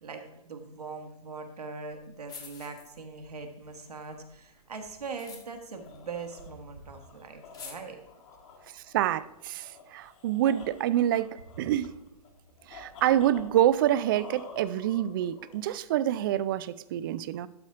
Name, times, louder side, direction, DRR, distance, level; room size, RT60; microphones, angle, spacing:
voice 1, 0.0-8.0, right 4 dB, 70° right, 4 dB, 1.5 m, -41 dB
sound 1, 1.9-2.0 2.2-3.3 3.6-6.7 7.0-7.1 7.4-7.7, left 6 dB, 20° left, 1.3 m, -48 dB
sound 2, 5.5-15.9, left 4 dB, 50° left, 1.9 m, -50 dB
voice 2, 8.7-11.3 11.6-11.9 12.7-17.5, right 12 dB, 35° right, 16 dB, 0.4 m, -27 dB
12.0 x 4.2 x 5.0 m, 0.88 s
figure-of-eight pair, 120°, 20 cm